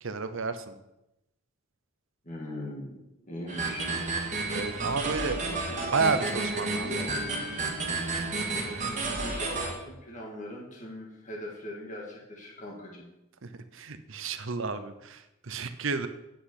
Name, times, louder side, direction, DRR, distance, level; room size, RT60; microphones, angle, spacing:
voice 1, 0.0-0.8 4.5-5.4 5.9-6.9 13.4-16.1, right 4 dB, 60° right, 10 dB, 0.8 m, -31 dB
voice 2, 2.2-3.9 5.5-5.9 6.7-7.2 9.2-13.1, left 1 dB, 35° left, -3 dB, 1.7 m, -40 dB
sound 1, 3.5-9.7, right 3 dB, 35° right, 1.7 m, -31 dB
8.5 x 5.9 x 8.0 m, 0.91 s
head